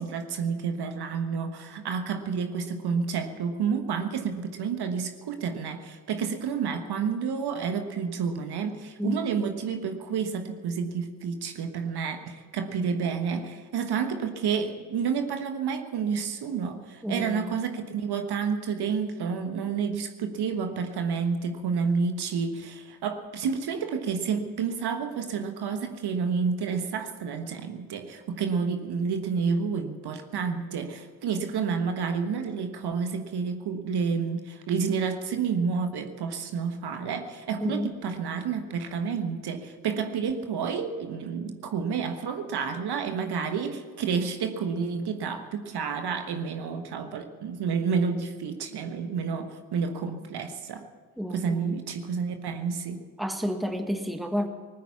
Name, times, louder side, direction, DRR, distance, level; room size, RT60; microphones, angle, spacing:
voice 1, 0.0-50.9 51.3-53.1, right 6 dB, 50° right, 7 dB, 1.4 m, -30 dB
voice 2, 17.0-17.5 37.6-37.9 51.2-51.8 53.2-54.5, equal, ahead, 6 dB, 1.6 m, -30 dB
20.0 x 9.3 x 7.1 m, 1.5 s
hypercardioid pair, 50°, 50 cm